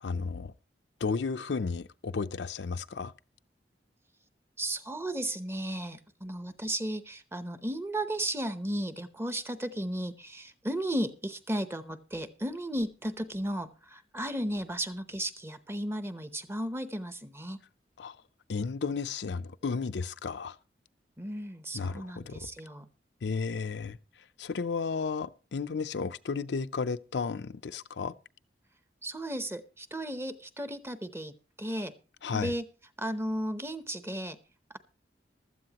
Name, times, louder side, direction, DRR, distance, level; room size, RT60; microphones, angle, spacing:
voice 1, 0.0-0.5 1.0-3.1 18.0-18.2 18.5-20.6 21.7-22.5 23.2-24.0 24.4-28.1 32.2-32.5, left 4 dB, 75° left, 0.5 m, -33 dB
voice 2, 4.6-17.6 21.2-22.9 29.0-31.9 32.3-32.6 33.0-34.4, right 1 dB, 15° right, 0.7 m, -35 dB
15.5 x 12.5 x 2.9 m
head